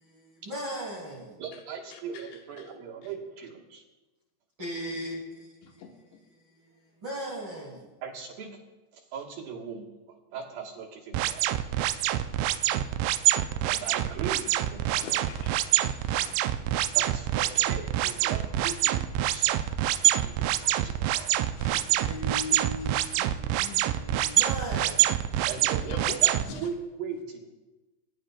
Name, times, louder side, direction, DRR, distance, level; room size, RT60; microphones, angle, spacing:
voice 1, 0.0-1.4 4.6-5.2 7.0-7.9 12.7-12.9 22.0-25.2, equal, 40° right, -2 dB, 1.9 m, -38 dB
voice 2, 1.4-3.8 8.0-8.6 8.9-12.1 13.7-15.0 16.9-20.0 20.2-21.3 25.5-27.5, right 6 dB, 65° right, -2 dB, 2.7 m, -39 dB
voice 3, 1.9-2.7 3.0-3.1 5.6-6.2 14.8-16.4 21.5-22.4 22.8-23.9 25.6-26.7, left 5 dB, 85° left, 2 dB, 3.4 m, -45 dB
sound 1, 11.1-26.4, right 14 dB, 85° right, 2.8 m, -25 dB
22.5 x 10.5 x 2.2 m, 1.1 s
omnidirectional pair, 5.0 m